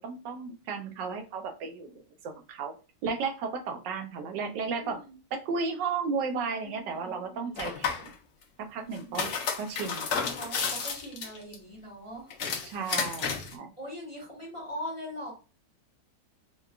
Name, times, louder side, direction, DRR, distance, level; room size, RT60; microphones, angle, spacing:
voice 1, 0.0-2.7 3.0-5.0 5.3-8.1 8.6-9.3 9.6-10.1 12.6-13.7, right 5 dB, 90° right, 5 dB, 1.3 m, -34 dB
voice 2, 4.8-5.2 6.6-7.7 8.8-9.2 10.3-12.3 12.7-12.8 13.8-15.3, equal, 20° left, -4 dB, 1.1 m, -41 dB
sound 1, 7.6-8.1 8.9-11.5 12.3-13.5, left 6 dB, 60° left, 0.8 m, -32 dB
4.6 x 2.3 x 2.2 m, 0.32 s
omnidirectional pair, 1.9 m